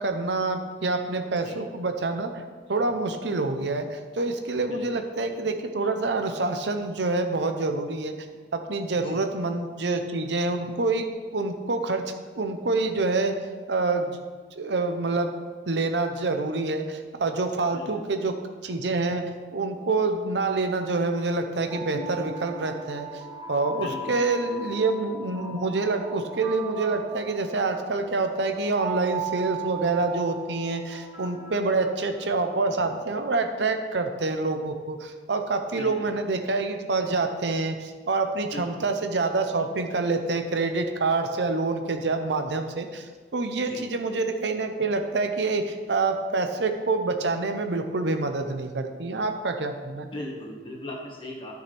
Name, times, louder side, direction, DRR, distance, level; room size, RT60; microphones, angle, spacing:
voice 1, 0.0-2.4 2.7-8.1 8.5-11.1 11.3-12.0 12.4-13.4 13.7-14.2 14.6-15.3 15.7-18.3 18.6-19.3 19.5-23.1 23.5-50.1, right 3 dB, 80° right, 6 dB, 0.8 m, -27 dB
voice 2, 4.7-5.0 8.9-9.2 17.7-18.0 23.8-24.1 35.7-36.1 38.5-38.8 43.7-43.8 50.1-51.5, left 1 dB, 30° left, -2 dB, 1.7 m, -38 dB
sound 1, 21.7-32.6, right 4 dB, 25° right, 2.0 m, -38 dB
12.5 x 6.5 x 3.4 m, 1.5 s
head